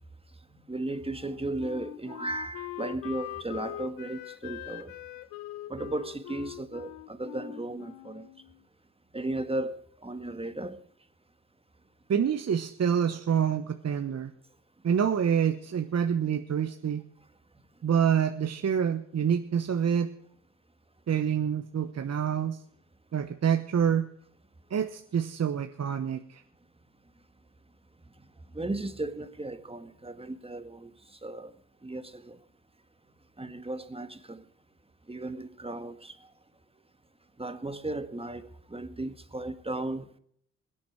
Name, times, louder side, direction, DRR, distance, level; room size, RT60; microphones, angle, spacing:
voice 1, 0.7-4.9 5.7-8.3 9.1-10.8 28.5-30.9 31.2-31.5 31.8-32.4 33.4-34.4 35.1-36.1 37.4-40.1, right 2 dB, 15° right, 1.7 m, -35 dB
Wind instrument woodwind instrument, 1.1-8.6, left 15 dB, 90° left, 0.8 m, -42 dB
voice 2, 12.1-14.3 14.8-17.0 17.8-20.1 21.1-22.6 23.1-24.0 24.7-26.4, right 8 dB, 45° right, 1.1 m, -27 dB
21.5 x 8.7 x 4.7 m
hypercardioid pair, 45°, 35 cm